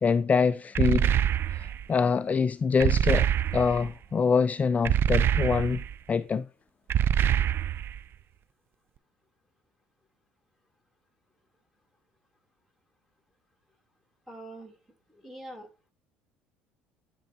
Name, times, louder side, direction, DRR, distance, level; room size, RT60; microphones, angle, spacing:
voice 1, 0.0-1.1 1.5-3.3 3.5-5.8 6.1-6.4, left 5 dB, 25° left, 0.4 m, -25 dB
sound 1, 0.7-1.8 2.8-3.9 4.8-5.9 6.9-8.0, right 10 dB, 45° right, 0.4 m, -25 dB
voice 2, 14.3-14.7 15.1-15.9, right 1 dB, ahead, 2.7 m, -44 dB
10.5 x 5.3 x 4.4 m
hypercardioid pair, 60°, 6 cm